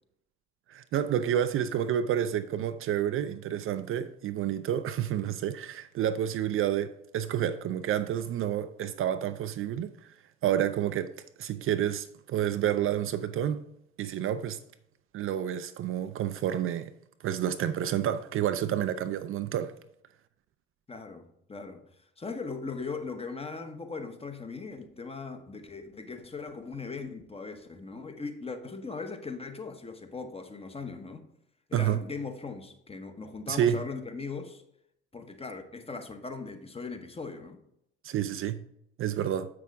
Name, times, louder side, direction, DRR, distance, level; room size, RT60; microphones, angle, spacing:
voice 1, 0.7-9.9 10.4-11.1 11.4-13.6 14.0-14.6 15.1-16.9 17.2-19.7 31.7-32.0 33.5-33.8 38.0-38.6 39.0-39.5, right 10 dB, 45° right, 0.5 m, -29 dB
voice 2, 20.9-21.8 22.2-31.3 31.7-34.6 35.1-37.6, left 4 dB, 20° left, 1.1 m, -39 dB
7.2 x 6.1 x 3.5 m
hypercardioid pair, 55°, 29 cm